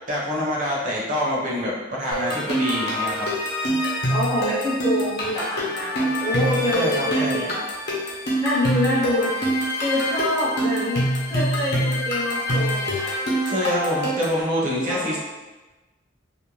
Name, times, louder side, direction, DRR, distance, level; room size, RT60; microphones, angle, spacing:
voice 1, 0.1-3.3 6.7-7.4 13.4-15.2, equal, 45° right, -5 dB, 0.7 m, -25 dB
sound 1, 2.1-14.4, equal, 55° left, 0.7 m, -25 dB
voice 2, 4.1-7.5 8.4-9.4 9.8-13.1 14.9-15.1, left 1 dB, 15° left, -8 dB, 0.6 m, -26 dB
2.5 x 2.1 x 3.0 m, 1.1 s
head